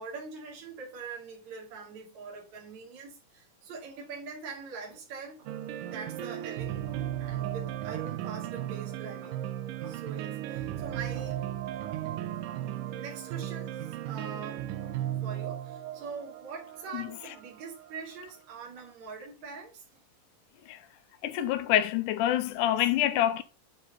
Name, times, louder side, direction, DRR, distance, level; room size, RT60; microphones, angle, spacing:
voice 1, 0.0-5.5 5.8-9.4 9.8-11.4 11.8-12.0 12.5-20.0 22.6-22.9, right 5 dB, 60° right, 3.7 m, -43 dB
sound 1, 5.5-18.4, right 12 dB, 90° right, 2.4 m, -36 dB
voice 2, 21.2-23.4, left 12 dB, 80° left, 2.2 m, -26 dB
9.4 x 4.1 x 3.9 m
omnidirectional pair, 3.8 m